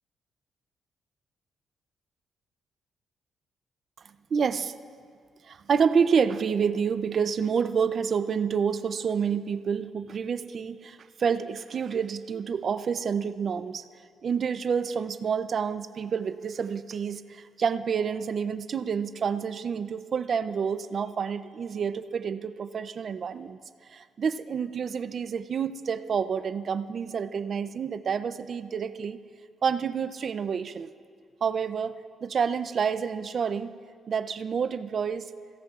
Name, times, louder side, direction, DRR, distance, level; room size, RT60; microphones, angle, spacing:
voice 1, 4.3-4.7 5.4-13.8 14.2-23.6 23.9-29.2 29.6-30.9 31.4-32.0 32.2-33.7 34.1-35.3, right 6 dB, 40° right, 12 dB, 0.4 m, -28 dB
27.0 x 16.5 x 2.4 m, 2.2 s
cardioid pair, 165°, 0 cm